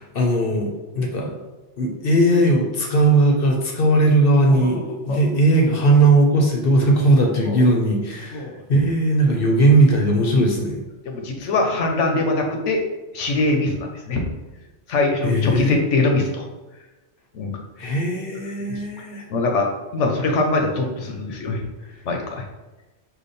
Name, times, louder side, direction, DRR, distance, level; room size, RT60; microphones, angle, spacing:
voice 1, 0.0-1.4 1.8-4.8 5.1-10.8 15.2-15.8 17.8-19.3, right 1 dB, 55° left, 1 dB, 0.9 m, -18 dB
voice 2, 4.5-5.2 7.4-7.7 8.3-8.5 11.0-12.8 13.1-14.2 14.9-16.5 17.3-17.6 18.6-18.8 19.3-21.6 22.0-22.4, left 2 dB, 85° left, 2 dB, 1.1 m, -23 dB
5.0 x 2.3 x 4.1 m, 1.1 s
omnidirectional pair, 1.2 m